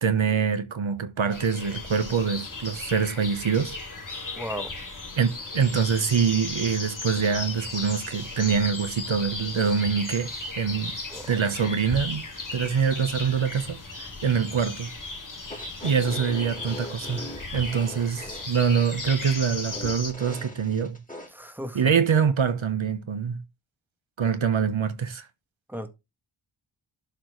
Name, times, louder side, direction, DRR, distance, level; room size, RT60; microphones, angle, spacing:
voice 1, 0.0-3.7 5.2-10.9 11.3-12.2 12.5-14.9 15.8-17.3 17.5-21.0 21.7-23.4 24.2-25.3, right 6 dB, 70° right, 1.0 m, -25 dB
sound 1, 1.3-20.1, left 3 dB, 40° left, 2.5 m, -36 dB
voice 2, 4.3-4.7 11.1-11.4 21.3-21.8 25.7-25.9, equal, 5° right, 1.8 m, -35 dB
sound 2, 15.4-21.3, left 1 dB, 15° left, 3.8 m, -40 dB
11.5 x 4.3 x 3.1 m
wide cardioid pair, 50°, 49 cm